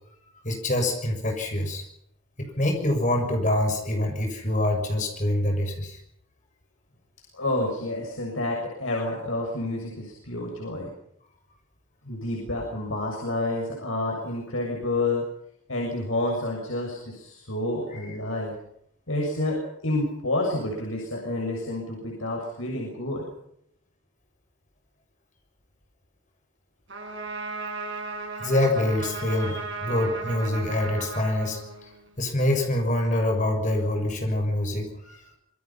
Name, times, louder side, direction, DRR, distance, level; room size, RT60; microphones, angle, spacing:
voice 1, 0.4-1.9 2.4-6.0 28.3-31.9 32.2-35.4, left 1 dB, 35° left, 3 dB, 6.8 m, -25 dB
voice 2, 7.3-10.9 12.0-15.2 15.7-18.5 19.1-23.3, left 2 dB, 85° left, -1 dB, 7.2 m, -29 dB
Trumpet, 26.9-32.2, right 3 dB, 60° right, 6.6 m, -36 dB
27.0 x 23.5 x 5.8 m, 0.72 s
head